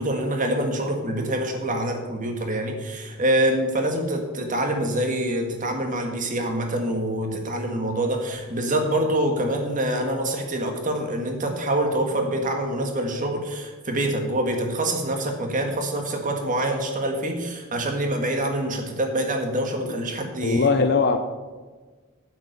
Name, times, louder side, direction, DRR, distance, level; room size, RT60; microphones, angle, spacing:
voice 1, 0.0-20.7, right 1 dB, 40° right, 4 dB, 1.8 m, -25 dB
voice 2, 20.4-21.2, left 4 dB, 50° left, 8 dB, 0.7 m, -20 dB
9.1 x 8.0 x 6.6 m, 1.4 s
head